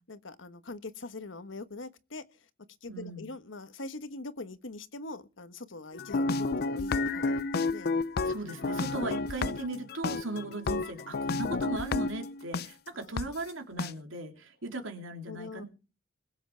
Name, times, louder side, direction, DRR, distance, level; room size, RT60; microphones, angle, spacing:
voice 1, 0.1-2.2 2.8-7.9 13.0-13.3 15.3-15.6, left 2 dB, 75° left, 1.3 m, -43 dB
voice 2, 2.9-3.3 8.2-15.7, right 2 dB, 90° right, 3.0 m, -38 dB
sound 1, 5.9-12.7 13.2-13.3 13.8-13.9, left 3 dB, 55° left, 0.5 m, -31 dB
21.5 x 8.0 x 4.6 m
head